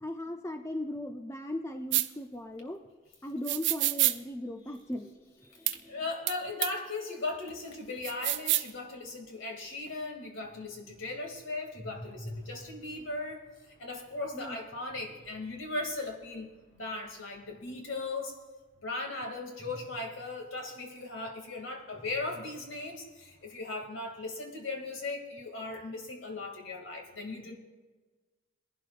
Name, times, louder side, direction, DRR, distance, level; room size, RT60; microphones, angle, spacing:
voice 1, 0.0-2.8 3.2-6.0 14.3-14.6, left 1 dB, 15° left, 5 dB, 0.5 m, -38 dB
sound 1, 1.9-2.1 3.5-4.2 5.7-5.8 6.3-6.4 6.6-6.7 8.0-8.7, right 15 dB, 60° right, 0.5 m, -27 dB
voice 2, 5.9-13.4 13.8-18.3 18.8-27.5, left 3 dB, 75° left, 2 dB, 2.4 m, -38 dB
sound 2, 8.0-18.3 19.6-21.5 21.8-23.5, equal, 40° left, 4.1 m, -52 dB
22.5 x 11.5 x 2.5 m, 1.3 s
head